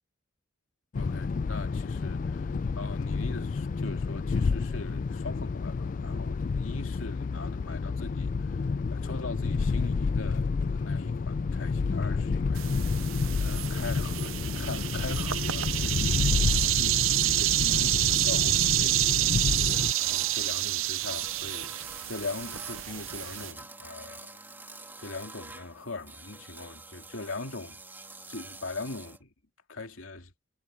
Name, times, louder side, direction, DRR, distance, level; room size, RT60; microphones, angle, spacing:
voice 1, 0.9-12.9 13.4-24.4 25.0-27.8 28.3-29.3 29.7-30.3, left 3 dB, 85° left, 2.6 m, -41 dB
sound 1, 0.9-19.9, left 4 dB, 40° left, 0.3 m, -30 dB
sound 2, 12.6-23.5, right 15 dB, 90° right, 0.6 m, -28 dB
sound 3, 19.7-29.2, right 2 dB, 10° right, 2.5 m, -47 dB
head